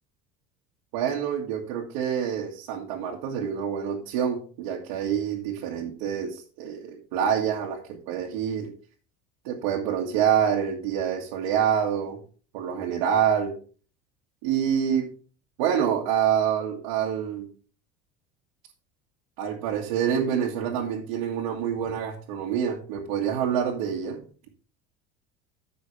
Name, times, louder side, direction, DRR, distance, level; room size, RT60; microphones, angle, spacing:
voice 1, 0.9-7.8 8.1-8.7 9.5-12.2 12.5-13.5 14.4-15.1 15.6-17.5 19.4-24.2, right 8 dB, 85° right, -2 dB, 1.8 m, -26 dB
14.0 x 5.5 x 3.3 m, 0.40 s
cardioid pair, 175°, 17 cm